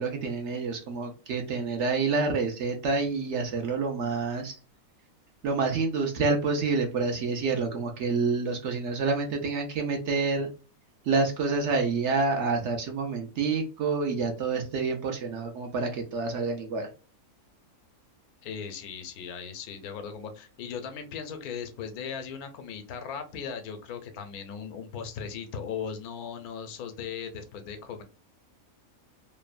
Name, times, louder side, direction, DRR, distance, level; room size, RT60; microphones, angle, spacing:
voice 1, 0.0-4.6 5.4-10.5 11.0-16.9, right 4 dB, 65° right, 4 dB, 0.8 m, -28 dB
voice 2, 18.4-28.0, left 7 dB, 85° left, 8 dB, 1.1 m, -38 dB
3.0 x 2.1 x 2.4 m, 0.34 s
omnidirectional pair, 1.5 m